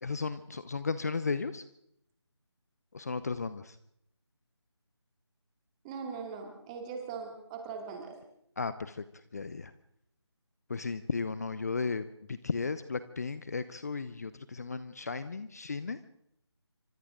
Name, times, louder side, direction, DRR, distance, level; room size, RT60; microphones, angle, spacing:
voice 1, 0.0-1.6 2.9-3.8 8.6-9.7 10.7-16.0, left 4 dB, 35° left, 14 dB, 0.8 m, -35 dB
voice 2, 5.8-8.2, right 5 dB, 10° right, 3 dB, 2.4 m, -40 dB
27.0 x 25.5 x 3.8 m, 0.74 s
figure-of-eight pair, 160°, 15 cm